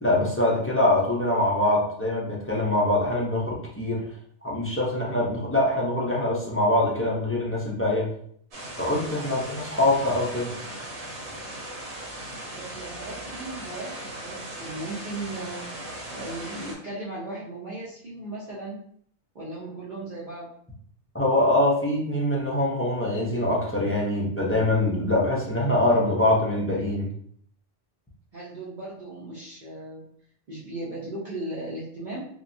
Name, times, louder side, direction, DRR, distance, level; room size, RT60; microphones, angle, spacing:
voice 1, 0.0-4.0 4.4-8.1 8.8-10.5 21.1-27.1, left 1 dB, 20° left, -5 dB, 0.3 m, -24 dB
sound 1, 8.5-16.7, right 1 dB, 70° right, 1.0 m, -38 dB
voice 2, 12.5-15.7 16.1-18.8 19.3-20.5 28.3-30.0 30.5-32.2, right 2 dB, 50° right, -7 dB, 0.7 m, -37 dB
2.9 x 2.2 x 2.6 m, 0.64 s
omnidirectional pair, 1.2 m